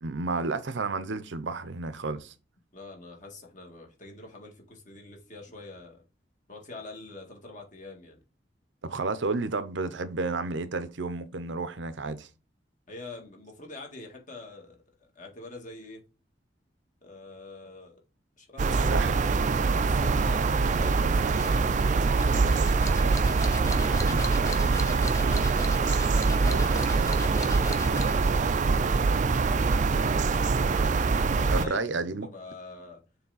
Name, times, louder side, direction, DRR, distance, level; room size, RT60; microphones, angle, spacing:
voice 1, 0.0-2.3 8.8-12.3 18.9-19.1 23.9-24.2 26.4-26.7 31.5-32.3, right 3 dB, 75° right, 0.7 m, -31 dB
voice 2, 2.7-6.0 6.5-8.2 12.9-16.0 17.0-18.0 18.4-22.8 23.4-25.5 26.5-30.8 31.3-31.9 32.2-33.0, left 2 dB, 45° left, 1.8 m, -45 dB
sound 1, 18.6-31.7, right 4 dB, 40° right, 0.4 m, -24 dB
sound 2, 21.3-28.3, left 2 dB, 15° left, 0.8 m, -40 dB
7.0 x 3.3 x 4.0 m
head